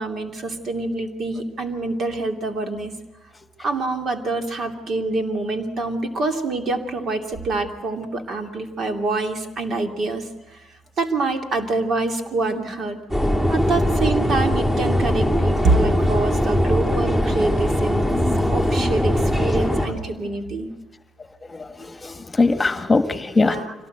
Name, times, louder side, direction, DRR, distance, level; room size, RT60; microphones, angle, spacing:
voice 1, 0.0-2.9 3.6-13.0 13.5-18.0 18.5-20.7 23.4-23.7, right 3 dB, 55° right, 5 dB, 2.8 m, -26 dB
sound 1, 13.1-19.9, equal, 20° right, 4.9 m, -20 dB
voice 2, 21.5-23.6, left 3 dB, 20° left, 9 dB, 1.5 m, -22 dB
25.5 x 18.0 x 8.0 m, 1.1 s
supercardioid pair, 80°, 0 cm